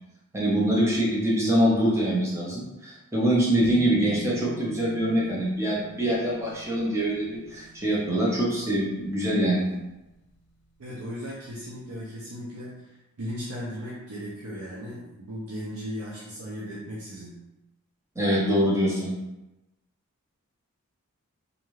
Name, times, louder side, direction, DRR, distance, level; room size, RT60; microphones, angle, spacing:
voice 1, 0.3-9.6 18.2-19.1, right 1 dB, 10° right, -6 dB, 0.6 m, -24 dB
sound 1, 3.6-10.2, right 2 dB, 90° left, 0.4 m, -44 dB
voice 2, 10.8-17.3, equal, 85° right, -6 dB, 0.6 m, -37 dB
2.5 x 2.4 x 3.0 m, 0.99 s
head